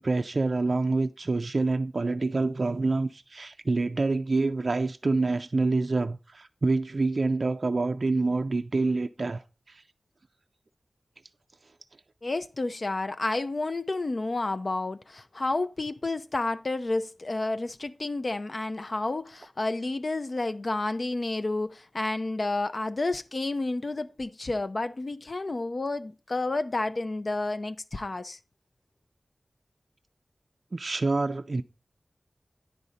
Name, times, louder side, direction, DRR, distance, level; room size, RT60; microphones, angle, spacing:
voice 1, 0.0-9.8 30.7-31.6, right 3 dB, 55° right, 0.3 m, -27 dB
voice 2, 12.2-28.4, left 2 dB, 50° left, 0.4 m, -30 dB
9.9 x 4.1 x 5.0 m
wide cardioid pair, 75°, 0 cm